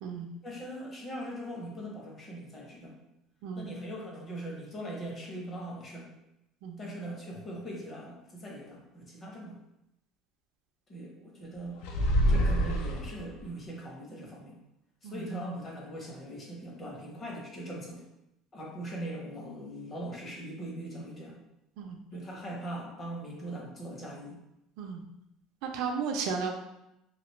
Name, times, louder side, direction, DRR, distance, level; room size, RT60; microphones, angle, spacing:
voice 1, 0.4-3.0 3.5-6.1 6.8-9.6 10.9-11.8 12.3-14.6 15.0-18.0 18.5-21.4 22.1-24.4, right 1 dB, 20° left, -2 dB, 0.7 m, -40 dB
sound 1, 11.8-13.5, equal, 80° left, 0.5 m, -26 dB
voice 2, 25.6-26.5, right 5 dB, 65° right, 3 dB, 0.4 m, -34 dB
3.0 x 2.4 x 3.1 m, 0.85 s
cardioid pair, 165°, 0 cm